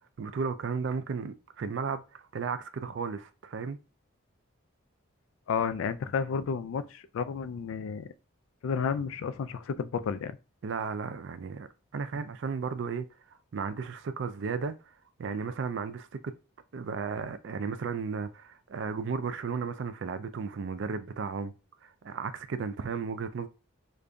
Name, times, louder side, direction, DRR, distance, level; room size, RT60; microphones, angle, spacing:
voice 1, 0.2-3.8 10.6-13.1 13.5-14.8 15.2-16.3 16.7-21.5 21.8-23.5, right 5 dB, 60° right, 0.4 m, -34 dB
voice 2, 5.5-8.1 8.6-10.4, left 6 dB, 75° left, 0.3 m, -31 dB
5.0 x 2.5 x 2.2 m
head